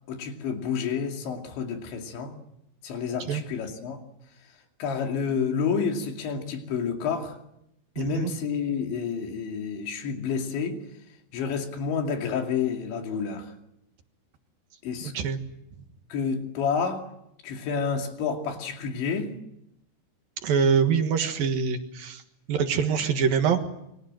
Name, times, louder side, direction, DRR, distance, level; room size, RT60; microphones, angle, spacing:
voice 1, 0.1-2.3 2.8-4.0 4.8-7.4 8.0-10.8 11.3-13.5 14.8-15.1 16.1-17.1 17.4-19.3, left 6 dB, 85° left, 4 dB, 4.9 m, -29 dB
voice 2, 8.0-8.3 15.1-15.4 20.4-22.2 22.5-23.6, right 6 dB, 60° right, 7 dB, 3.0 m, -24 dB
28.0 x 23.5 x 7.7 m, 0.82 s
omnidirectional pair, 5.1 m